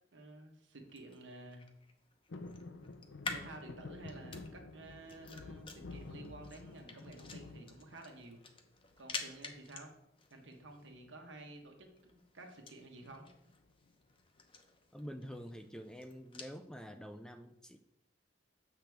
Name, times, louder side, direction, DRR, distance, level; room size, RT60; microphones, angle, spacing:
voice 1, 0.1-1.7 3.3-8.4 9.0-9.9 10.3-13.3, right 2 dB, 80° right, 4 dB, 1.2 m, -52 dB
sound 1, 0.7-16.6, left 4 dB, 30° left, 0.8 m, -50 dB
sound 2, 2.3-8.5 8.9-9.5 10.8-11.2 11.5-11.6 11.8-12.1 13.0-13.9 14.4-14.5, left 3 dB, 80° left, 0.6 m, -50 dB
voice 2, 14.9-17.8, equal, 5° left, 6 dB, 0.3 m, -47 dB
7.7 x 5.9 x 3.5 m, 0.86 s
head